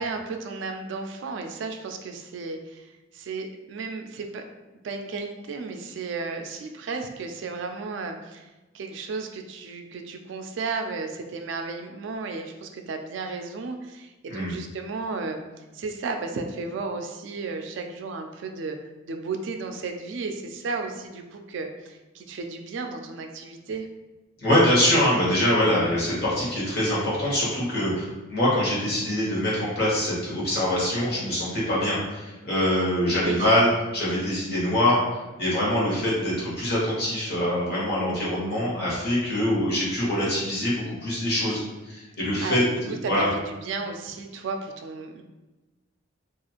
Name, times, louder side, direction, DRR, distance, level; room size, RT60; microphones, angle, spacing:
voice 1, 0.0-4.4 4.8-8.5 8.7-15.4 15.7-18.8 19.1-23.9 33.2-33.5 42.2-42.7 43.0-45.2, right 4 dB, 65° right, 5 dB, 0.3 m, -34 dB
voice 2, 24.4-35.0 35.4-41.6 41.9-42.6 43.1-43.3, left 1 dB, 55° left, -6 dB, 1.1 m, -24 dB
2.9 x 2.4 x 2.4 m, 1.1 s
head